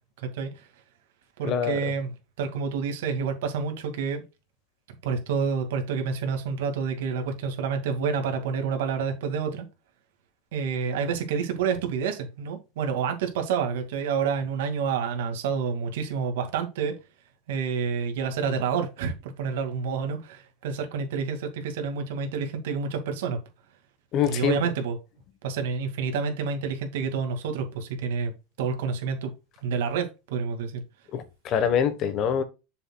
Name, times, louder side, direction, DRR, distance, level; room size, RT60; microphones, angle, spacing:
voice 1, 0.2-0.7 1.4-2.1 2.4-4.2 5.0-9.7 10.5-16.9 17.5-23.4 24.3-25.0 25.4-29.3 29.6-30.8, right 6 dB, 85° right, 2.3 m, -28 dB
voice 2, 1.4-1.8 24.1-24.6 31.1-32.4, left 8 dB, 40° left, 1.3 m, -25 dB
7.2 x 6.8 x 2.4 m
supercardioid pair, 145°, 0 cm